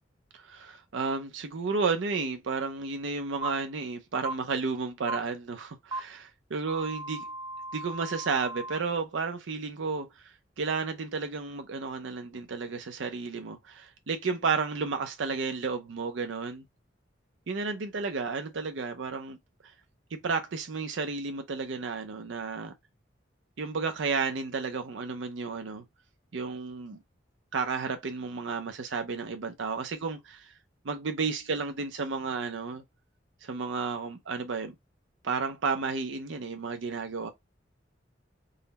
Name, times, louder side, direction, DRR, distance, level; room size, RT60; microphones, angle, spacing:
voice 1, 0.3-7.3 7.7-16.6 17.5-19.4 20.1-22.7 23.6-25.8 26.3-27.0 27.5-30.5 30.8-32.8 33.4-34.7 35.2-37.3, right 4 dB, 80° right, 0.5 m, -32 dB
sound 1, 3.4-3.5 4.2-4.3 5.1-5.2 5.9-6.0 6.7-8.8, right 2 dB, 25° right, 0.4 m, -37 dB
3.9 x 2.1 x 4.0 m
head